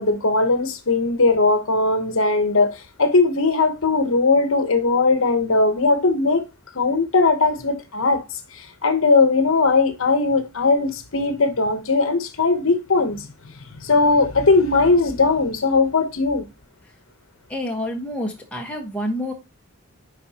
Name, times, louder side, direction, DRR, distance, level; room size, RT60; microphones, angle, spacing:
voice 1, 0.0-6.4 6.7-8.2 8.5-13.3 13.8-16.5, left 3 dB, 70° left, 1.0 m, -19 dB
voice 2, 17.5-19.3, left 1 dB, 5° left, 1.3 m, -28 dB
10.5 x 4.1 x 2.9 m
head